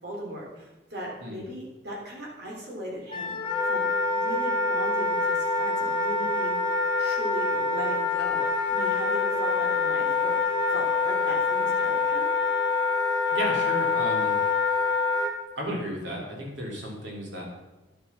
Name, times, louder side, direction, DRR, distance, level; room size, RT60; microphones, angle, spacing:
voice 1, 0.0-3.8 4.1-6.6 7.0-12.3, equal, 60° right, -2 dB, 3.6 m, -38 dB
Wind instrument woodwind instrument, 3.1-15.3, left 4 dB, 25° left, 1.6 m, -25 dB
voice 2, 13.3-14.4 15.5-17.4, equal, 85° right, -1 dB, 3.4 m, -33 dB
10.5 x 7.4 x 5.9 m, 1.0 s
head